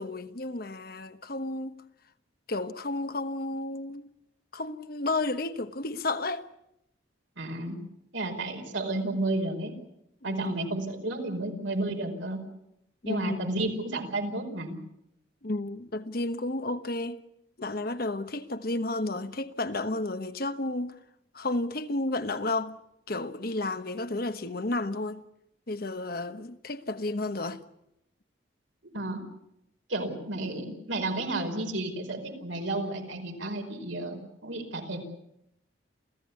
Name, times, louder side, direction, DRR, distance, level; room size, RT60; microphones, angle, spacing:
voice 1, 0.0-1.8 2.5-4.1 4.5-6.5 10.2-10.6 13.0-13.4 15.4-17.2 17.6-21.0 21.3-22.8 23.1-25.2 25.7-27.6, left 2 dB, 50° left, 1.2 m, -32 dB
voice 2, 7.4-7.8 8.1-9.7 10.2-12.4 13.1-14.8 28.9-29.2 29.9-35.0, right 2 dB, 85° right, 5.1 m, -32 dB
28.5 x 16.0 x 8.4 m
head